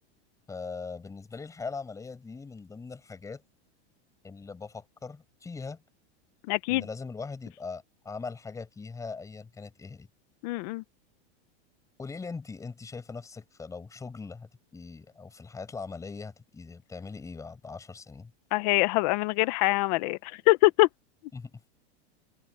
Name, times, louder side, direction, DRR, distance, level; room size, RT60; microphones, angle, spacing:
voice 1, 0.5-3.4 4.2-5.8 6.7-10.1 12.0-18.3 21.3-21.5, left 4 dB, 10° left, 7.9 m, -40 dB
voice 2, 6.5-6.8 10.4-10.8 18.5-20.9, left 20 dB, 40° left, 0.7 m, -24 dB
supercardioid pair, 165°, 33 cm